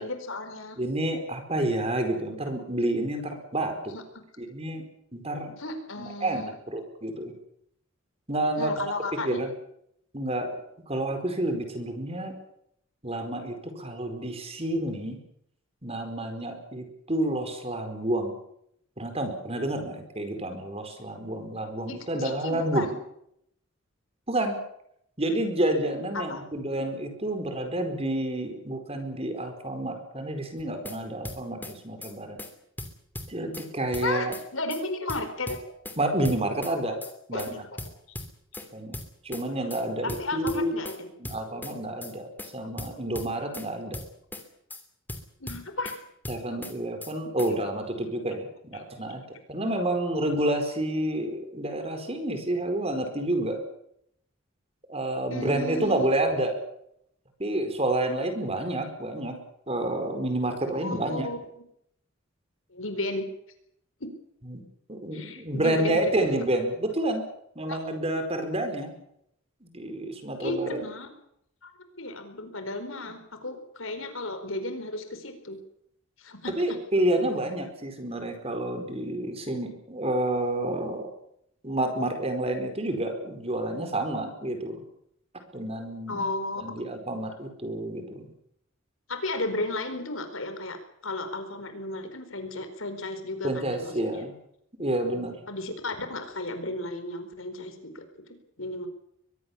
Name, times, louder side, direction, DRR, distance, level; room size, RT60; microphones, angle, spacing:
voice 1, 0.0-0.8 3.9-4.2 5.6-6.5 8.6-9.4 21.9-22.9 26.1-26.4 34.0-35.7 37.3-37.8 40.0-41.1 45.4-45.9 55.3-56.1 60.8-61.4 62.7-63.3 64.0-64.1 65.1-65.9 66.2-66.3 67.7-67.8 70.4-71.1 71.6-71.7 72.0-75.6 76.2-76.5 86.1-86.6 89.1-90.8 91.0-94.2 95.5-98.0 98.6-98.9, left 2 dB, 75° left, 8 dB, 4.6 m, -34 dB
voice 2, 0.8-3.9 4.4-4.8 5.1-5.6 6.0-7.3 8.3-8.7 9.2-9.5 10.1-10.6 10.9-12.3 13.0-15.2 15.8-18.3 19.0-22.9 24.3-24.6 25.2-32.4 33.3-34.3 36.0-37.0 37.3-37.6 38.7-39.0 39.2-40.8 41.2-44.0 46.3-49.2 49.5-53.6 54.9-56.5 57.4-59.4 59.7-61.3 64.5-64.6 64.9-67.2 67.5-68.9 69.6-70.8 76.6-81.1 81.6-84.9 85.5-86.2 86.6-88.3 93.4-94.3 94.8-95.3, right 1 dB, 30° right, 6 dB, 4.8 m, -29 dB
sound 1, 30.6-31.0 31.2-31.7 32.0-32.1 32.4-32.5 32.8-33.7 33.9-34.4 34.7-34.8 35.1-36.0 36.2-36.7 37.0-37.1 37.4-37.5 37.8-38.7 38.9-39.4 39.7-39.8 40.1-41.0 41.2-41.7 42.0-42.1 42.4-42.5 42.8-43.7 43.9-44.4 44.7-44.8 45.1-46.0 46.2-46.7 47.0-47.1 47.4-47.5, left 1 dB, 10° left, 3.1 m, -38 dB
23.0 x 21.5 x 7.2 m, 0.73 s
head